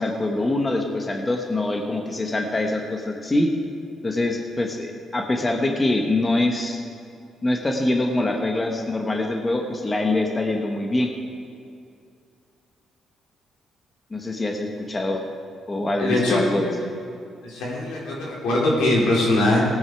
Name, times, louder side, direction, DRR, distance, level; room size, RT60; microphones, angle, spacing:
voice 1, 0.0-3.5 4.0-6.8 7.4-11.1 14.1-15.2 15.7-16.7, left 2 dB, 25° left, 2 dB, 1.3 m, -24 dB
voice 2, 16.0-16.4 17.4-19.6, left 2 dB, 90° left, -4 dB, 3.9 m, -21 dB
17.5 x 9.6 x 4.8 m, 2.4 s
cardioid pair, 90°, 0 cm